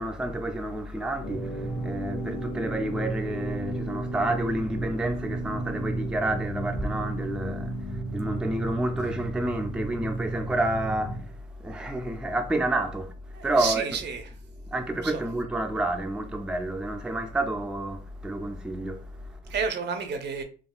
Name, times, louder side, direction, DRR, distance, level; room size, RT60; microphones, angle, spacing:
voice 1, 0.0-13.9 14.7-19.5, right 1 dB, 5° right, 0.4 m, -30 dB
sound 1, 1.2-11.2, right 2 dB, 50° left, 1.3 m, -33 dB
voice 2, 13.3-14.2 15.0-15.2 18.6-18.8 19.5-20.4, right 5 dB, 60° right, 0.6 m, -31 dB
3.6 x 2.3 x 2.3 m
cardioid pair, 90°, 20 cm